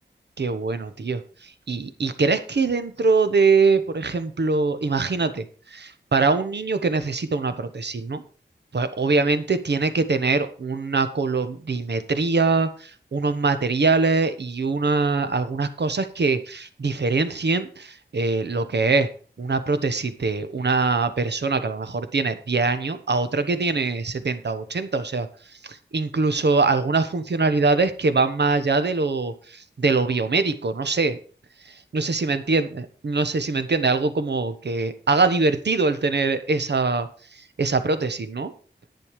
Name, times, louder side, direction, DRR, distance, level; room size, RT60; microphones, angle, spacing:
voice 1, 0.4-1.2 1.7-8.2 8.7-19.1 19.4-25.3 25.6-31.2 31.9-37.1 37.6-38.5, right 3 dB, 70° right, 10 dB, 1.2 m, -23 dB
10.5 x 9.3 x 4.9 m, 0.40 s
wide cardioid pair, 75°, 18 cm